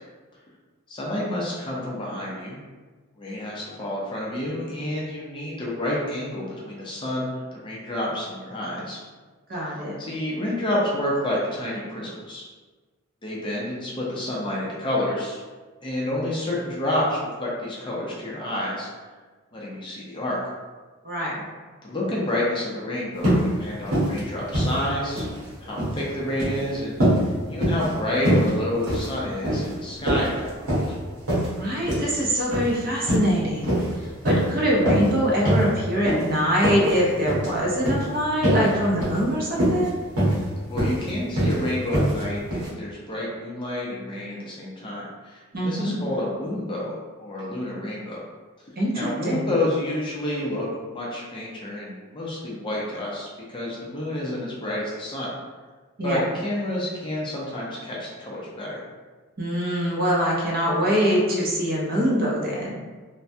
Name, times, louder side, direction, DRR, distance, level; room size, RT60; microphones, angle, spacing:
voice 1, 0.9-2.6 3.2-9.0 10.0-12.4 13.2-15.4 15.8-18.9 19.5-20.4 21.8-25.3 25.6-27.2 27.5-31.0 40.7-46.9 47.2-48.2 48.9-55.3 56.0-58.8, left 1 dB, 20° left, -5 dB, 0.5 m, -29 dB
voice 2, 9.5-10.0 21.0-21.4 31.6-40.0 45.5-45.9 48.8-49.6 56.0-56.2 59.4-62.8, equal, 40° right, -4 dB, 0.6 m, -24 dB
sound 1, 23.2-23.5 23.8-24.2 24.5-25.4 25.6-26.0 26.3-26.6 27.0-27.2 27.6-27.9 28.2-28.5 28.8-29.1 29.4-29.7 30.1-30.9 31.3-31.5 31.9-32.1 32.5-32.7 33.0-33.3 33.6-33.9 34.2-34.5 34.8-35.1 35.4-35.7 36.0-36.2 36.6-36.9 37.3-37.5 37.8-38.0 38.4-38.7 39.0-39.2 39.5-39.9 40.2-40.4 40.8-41.0 41.4-41.6 41.9-42.2 42.5-42.7, right 1 dB, 85° right, 1.3 m, -22 dB
3.3 x 2.1 x 2.6 m, 1.4 s
head